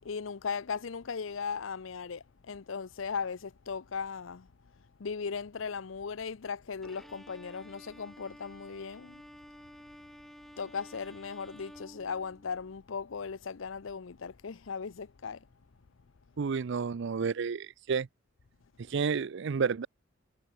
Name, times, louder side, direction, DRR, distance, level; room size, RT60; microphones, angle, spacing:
voice 1, 0.0-9.2 10.6-15.5, left 5 dB, 75° left, 0.6 m, -38 dB
Bowed string instrument, 6.8-12.7, equal, ahead, 0.8 m, -52 dB
voice 2, 16.4-18.1 18.9-19.9, right 5 dB, 65° right, 0.5 m, -30 dB
head